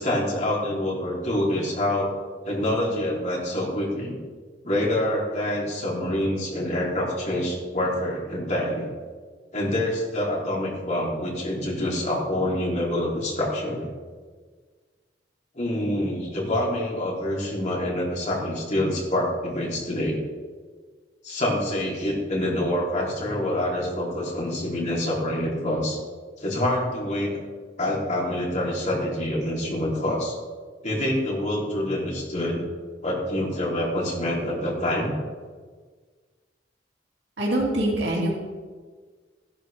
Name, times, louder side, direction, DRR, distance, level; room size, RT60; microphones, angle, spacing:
voice 1, 0.0-2.1 2.4-4.2 4.6-8.9 9.5-13.9 15.6-20.2 21.2-26.0 26.4-27.4 27.8-30.4 30.8-32.6 33.0-35.1, left 1 dB, 45° left, -3 dB, 3.4 m, -26 dB
voice 2, 37.4-38.3, right 1 dB, 80° right, -4 dB, 2.8 m, -24 dB
15.0 x 11.5 x 3.5 m, 1.5 s
head